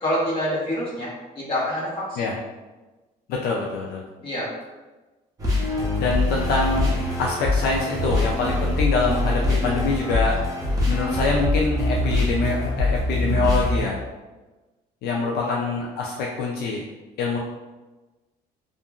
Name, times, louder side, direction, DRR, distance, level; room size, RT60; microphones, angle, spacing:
voice 1, 0.0-1.1 1.3-2.3 4.2-4.5 15.2-15.5, equal, 30° left, -7 dB, 1.2 m, -27 dB
voice 2, 3.3-4.0 6.0-14.0 15.0-16.8 17.2-17.4, left 3 dB, 70° left, -1 dB, 0.4 m, -25 dB
sound 1, 5.4-13.8, left 1 dB, 20° right, 0.7 m, -23 dB
2.7 x 2.5 x 2.3 m, 1.2 s
cardioid pair, 110°, 17 cm